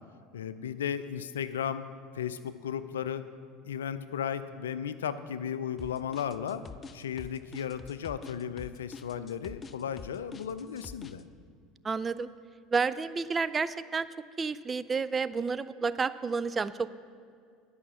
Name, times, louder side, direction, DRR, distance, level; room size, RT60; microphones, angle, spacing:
voice 1, 0.3-1.8 2.1-3.2 3.6-6.6 6.9-11.2, left 8 dB, 85° left, 13 dB, 0.4 m, -35 dB
sound 1, 5.8-11.2, left 5 dB, 30° left, 0.5 m, -45 dB
voice 2, 11.8-12.3 12.7-14.1 14.4-16.9, right 5 dB, 25° right, 15 dB, 0.4 m, -30 dB
11.0 x 5.8 x 7.6 m, 2.3 s
hypercardioid pair, 75°, 0 cm